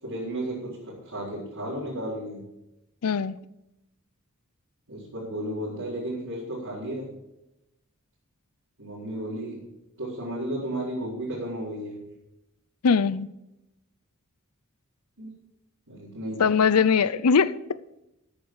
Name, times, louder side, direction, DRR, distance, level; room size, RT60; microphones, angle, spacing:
voice 1, 0.0-2.4 4.9-7.1 8.8-9.6 10.0-12.0 15.2-15.3 15.9-16.5, right 1 dB, 70° right, -8 dB, 4.2 m, -33 dB
voice 2, 3.0-3.4 12.8-13.3 16.4-17.6, left 6 dB, 80° left, 17 dB, 0.6 m, -21 dB
13.5 x 8.6 x 4.7 m, 0.90 s
head